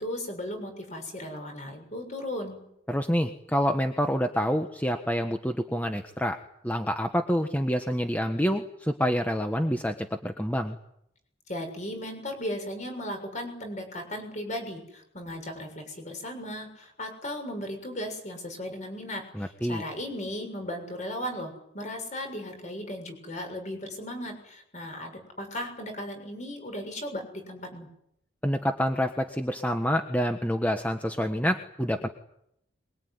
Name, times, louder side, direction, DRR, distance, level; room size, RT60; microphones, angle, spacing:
voice 1, 0.0-2.6 11.5-27.9, left 1 dB, 40° left, 5 dB, 7.0 m, -36 dB
voice 2, 2.9-6.4 6.6-10.8 19.3-19.8 28.4-32.1, equal, 10° left, 5 dB, 1.3 m, -27 dB
23.0 x 23.0 x 9.7 m, 0.76 s
head